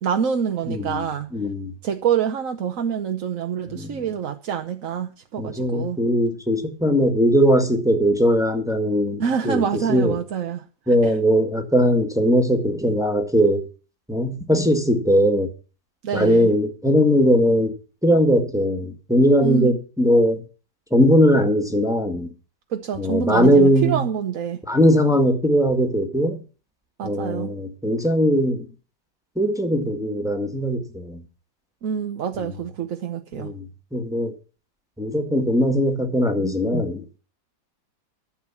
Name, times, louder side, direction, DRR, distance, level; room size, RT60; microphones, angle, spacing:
voice 1, 0.0-1.3 1.8-6.0 9.2-10.6 11.0-11.1 16.0-16.5 19.4-19.8 22.7-24.6 27.0-27.5 31.8-33.5, right 8 dB, 55° right, 1.1 m, -26 dB
voice 2, 0.6-1.1 1.3-1.7 3.7-4.1 5.4-10.1 10.9-13.6 14.1-15.5 16.1-17.7 18.0-20.4 20.9-22.3 23.0-24.1 24.7-26.4 27.0-28.7 29.3-31.2 32.4-32.5 33.3-33.7 33.9-34.3 35.0-37.2, equal, ahead, 1.6 m, -20 dB
13.0 x 7.4 x 7.1 m
omnidirectional pair, 2.0 m